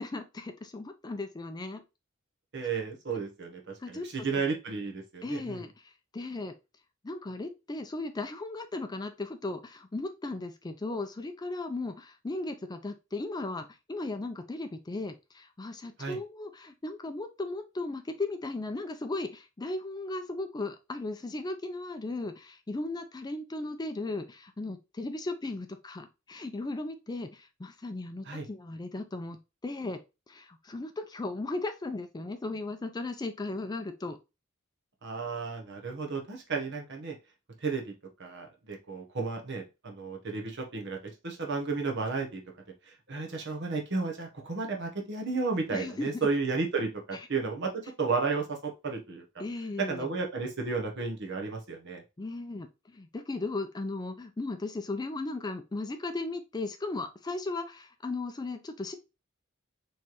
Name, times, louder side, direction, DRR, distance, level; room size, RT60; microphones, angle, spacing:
voice 1, 0.0-1.8 3.1-3.2 3.8-4.1 5.2-6.5 7.0-30.0 30.3-34.2 45.7-46.2 49.4-50.1 52.2-59.0, left 2 dB, 20° left, 8 dB, 0.4 m, -36 dB
voice 2, 2.5-5.6 16.0-16.2 28.3-28.4 35.0-37.2 37.6-37.9 38.2-42.4 43.1-49.2 49.8-52.0, right 4 dB, 60° right, 2 dB, 1.0 m, -33 dB
4.2 x 3.2 x 3.0 m, 0.26 s
head